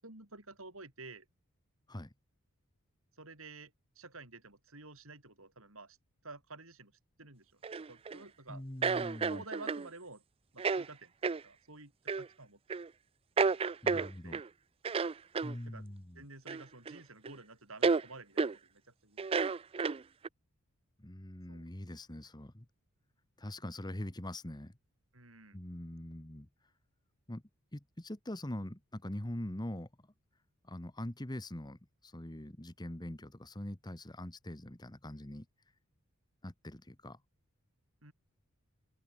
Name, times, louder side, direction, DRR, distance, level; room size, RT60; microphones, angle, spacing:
voice 1, 0.0-1.3 3.1-6.0 6.2-6.9 7.2-7.6 7.9-8.6 9.0-10.2 10.5-11.9 12.2-12.8 13.9-14.4 15.7-15.9 16.1-19.3 21.5-21.7 25.1-25.6 38.0-38.1, right 3 dB, 65° right, 7.7 m, -51 dB
sound 1, 7.6-8.2 8.8-9.9 10.6-10.9 11.2-11.4 12.1-12.3 12.7-12.9 13.4-14.5 14.8-15.5 16.5-17.0 17.2-17.3 17.8-18.0 18.4-18.6 19.2-20.3, right 4 dB, 25° right, 0.4 m, -31 dB
voice 2, 8.5-9.4 13.8-14.4 15.4-16.2 21.0-22.6 23.4-24.7 25.5-26.5 27.3-27.4 27.7-30.1 30.6-35.5 36.4-37.2, left 1 dB, 20° left, 1.4 m, -43 dB
head